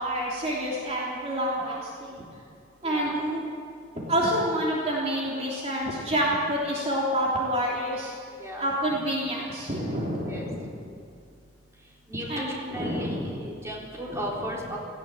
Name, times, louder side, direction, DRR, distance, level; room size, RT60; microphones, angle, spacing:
voice 1, 0.0-2.2 2.8-3.4 3.9-8.1 8.6-10.9 12.3-13.4 14.1-14.2, equal, 35° right, -4 dB, 3.3 m, -28 dB
voice 2, 8.4-8.7 10.2-10.5 12.1-14.8, equal, 15° right, -4 dB, 3.9 m, -35 dB
18.0 x 16.5 x 9.0 m, 2.3 s
head